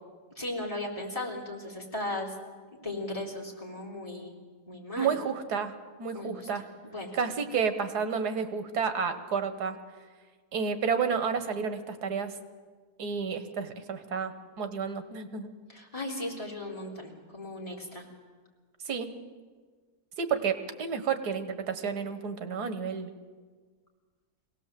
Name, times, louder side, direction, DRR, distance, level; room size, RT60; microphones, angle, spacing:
voice 1, 0.4-2.3 2.8-4.3 4.7-5.1 6.1-6.5 6.8-7.1 15.7-18.1, left 1 dB, 20° left, -1 dB, 3.6 m, -36 dB
voice 2, 5.0-5.7 6.0-6.6 7.1-9.8 10.5-12.3 13.0-15.5 18.8-19.1 20.2-23.1, right 6 dB, 90° right, 9 dB, 1.8 m, -31 dB
24.5 x 17.5 x 7.6 m, 1.5 s
omnidirectional pair, 1.7 m